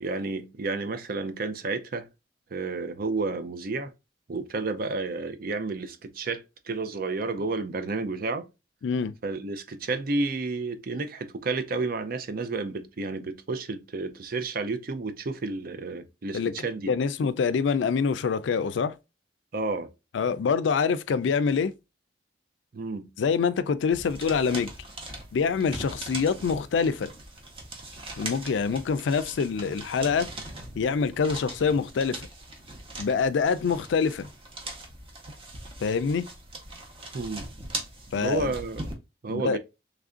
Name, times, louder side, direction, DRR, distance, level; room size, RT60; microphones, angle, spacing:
voice 1, 0.0-2.1 2.5-3.9 4.3-8.5 9.2-16.9 19.5-19.9 22.7-23.1 37.1-37.5 38.1-38.8 39.2-39.6, right 3 dB, 50° right, 0.5 m, -31 dB
voice 2, 8.8-9.1 16.3-16.5 16.9-18.9 20.1-21.7 23.2-24.7 25.3-27.1 28.2-30.3 30.8-32.3 33.0-34.3 35.8-36.3 38.1-38.5 39.3-39.6, left 5 dB, 80° left, 0.4 m, -25 dB
sound 1, 23.9-38.9, right 2 dB, 30° right, 0.8 m, -40 dB
3.3 x 2.5 x 3.6 m
head